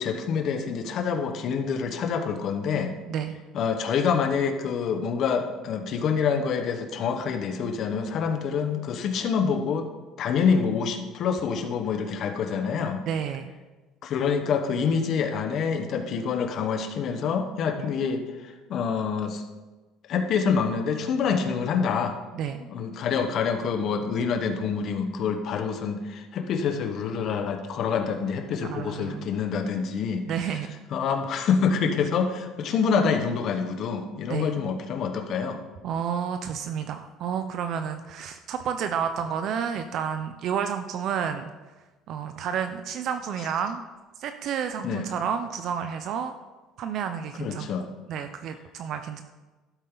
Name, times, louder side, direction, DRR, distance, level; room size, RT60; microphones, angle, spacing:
voice 1, 0.0-2.9 3.5-9.9 10.2-13.0 14.0-19.4 20.1-22.2 22.7-30.2 30.9-35.6 44.8-45.0 47.4-47.9, left 6 dB, 50° left, 6 dB, 1.2 m, -26 dB
voice 2, 13.1-13.5 17.8-17.9 22.3-22.6 28.6-29.2 30.2-30.7 34.3-34.5 35.8-41.5 42.1-43.8 44.2-46.3 46.8-47.7 48.1-49.2, right 8 dB, 55° right, 8 dB, 0.6 m, -30 dB
12.5 x 8.1 x 3.9 m, 1.2 s
cardioid pair, 140°, 0 cm